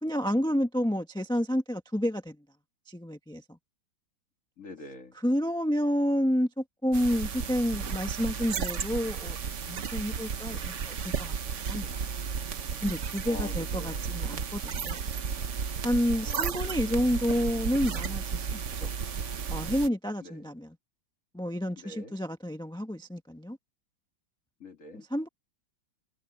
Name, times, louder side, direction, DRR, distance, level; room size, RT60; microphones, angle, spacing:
voice 1, 0.0-2.4 2.9-3.6 5.1-9.4 9.7-11.3 11.6-12.1 12.8-15.0 15.8-18.9 19.5-20.8 21.3-23.6 25.1-25.3, equal, 5° left, 1.1 m, -30 dB
voice 2, 4.6-5.1 13.2-14.0 16.1-16.4 16.8-16.9 20.2-20.5 21.8-22.2 24.6-25.1, left 3 dB, 40° left, 2.4 m, -45 dB
sound 1, 6.9-19.9, right 6 dB, 45° right, 1.2 m, -33 dB
omnidirectional pair, 2.1 m